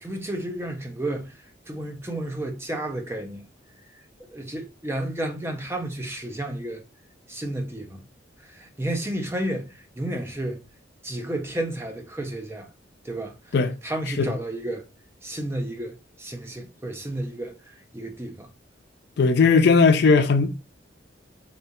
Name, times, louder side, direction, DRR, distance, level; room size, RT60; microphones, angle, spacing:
voice 1, 0.0-3.5 4.2-6.8 7.3-8.0 8.4-10.6 11.0-12.7 13.0-13.5 13.8-14.9 15.2-18.5, right 1 dB, 15° right, 0.5 m, -32 dB
voice 2, 19.2-20.5, left 4 dB, 60° left, 0.4 m, -17 dB
3.9 x 2.3 x 2.8 m
head